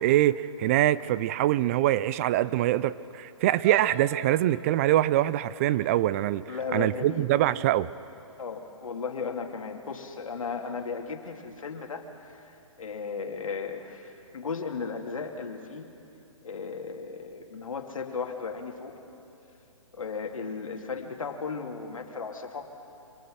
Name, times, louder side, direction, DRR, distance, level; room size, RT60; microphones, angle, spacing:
voice 1, 0.0-7.9, right 14 dB, 25° right, 18 dB, 0.4 m, -24 dB
sound 1, 3.6-7.6 8.1-8.4 8.7-8.8, right 2 dB, 50° right, 2.9 m, -46 dB
voice 2, 6.5-7.3 8.4-15.9 16.4-19.0 19.9-22.7, left 5 dB, 80° left, 3 dB, 2.4 m, -35 dB
25.0 x 18.5 x 6.3 m, 2.8 s
hypercardioid pair, 145°, 17 cm